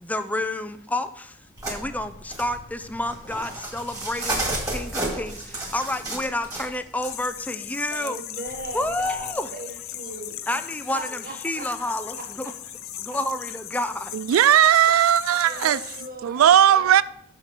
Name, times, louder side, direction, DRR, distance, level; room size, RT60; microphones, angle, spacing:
voice 1, 0.0-1.4 1.7-8.2 8.7-9.5 10.5-12.5 13.0-14.1, left 1 dB, 10° left, 0.5 m, -29 dB
sound 1, 1.6-7.1 8.5-9.3, right 2 dB, 20° right, 2.2 m, -32 dB
sound 2, 7.0-16.1, left 12 dB, 90° left, 0.6 m, -38 dB
voice 2, 7.9-10.4 10.8-12.2 14.8-15.1 15.4-16.9, right 2 dB, 45° right, 1.4 m, -39 dB
voice 3, 14.1-15.8 16.2-17.0, right 10 dB, 85° right, 0.3 m, -17 dB
7.2 x 6.6 x 5.8 m
head